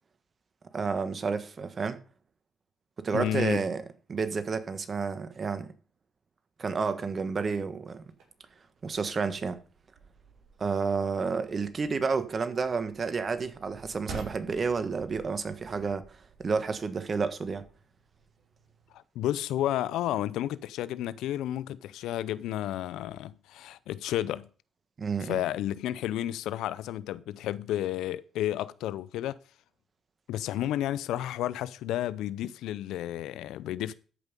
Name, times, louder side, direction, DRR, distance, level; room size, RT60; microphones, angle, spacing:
voice 1, 0.7-2.0 3.0-3.8 4.1-5.7 6.6-8.0 8.8-9.6 10.6-17.6 25.0-25.4, right 5 dB, 45° right, 1.4 m, -30 dB
voice 2, 3.1-3.6 18.9-24.5 25.2-29.4 30.3-33.9, left 12 dB, 80° left, 0.5 m, -32 dB
sound 1, 8.0-19.0, right 5 dB, 70° right, 5.4 m, -50 dB
13.5 x 5.6 x 5.2 m
supercardioid pair, 65°, 0 cm